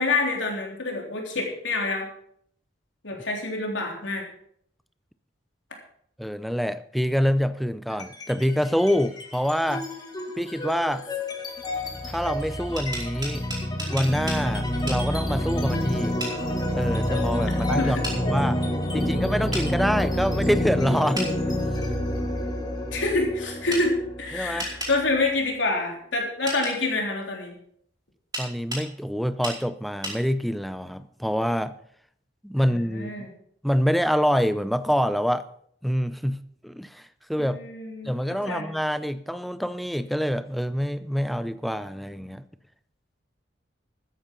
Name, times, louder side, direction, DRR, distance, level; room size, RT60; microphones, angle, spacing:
voice 1, 0.0-2.1 3.0-4.3 17.8-18.1 19.1-19.5 22.9-27.5 32.9-33.3 37.4-38.1 38.5-38.7, left 2 dB, 85° left, 3.7 m, -27 dB
voice 2, 6.2-9.9 10.4-11.1 12.0-13.5 13.9-16.2 16.7-18.6 18.9-21.6 24.3-24.7 28.4-31.8 32.4-33.3 33.6-35.5 35.8-37.6 38.0-42.4, equal, ahead, 0.5 m, -26 dB
sound 1, 7.9-8.4 8.8-25.4, left 1 dB, 20° left, 2.1 m, -28 dB
sound 2, 12.6-14.4 14.9-15.0 16.2-16.4 18.0-18.2 19.5-19.7 21.1-21.3 23.7-23.8 24.6-24.9 26.5-26.7 28.3-28.9 29.4-29.6 30.0-30.2, right 1 dB, 20° right, 4.7 m, -32 dB
13.5 x 10.0 x 5.4 m
head